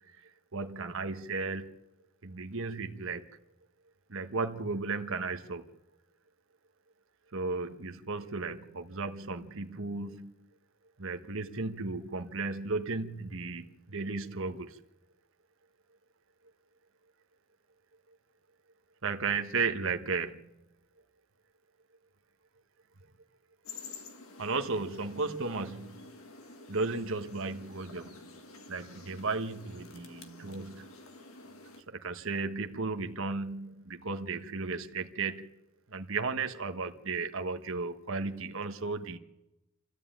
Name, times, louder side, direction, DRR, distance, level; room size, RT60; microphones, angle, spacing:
voice 1, 0.5-1.7 2.2-3.3 4.1-5.7 7.3-10.3 11.0-14.8 19.0-20.4 24.4-26.1 26.7-28.2 28.7-30.8 31.9-35.5 35.9-39.2, right 4 dB, 65° right, 1.3 m, -34 dB
sound 1, 23.6-31.8, left 3 dB, 75° left, 1.8 m, -50 dB
28.0 x 13.5 x 9.1 m
head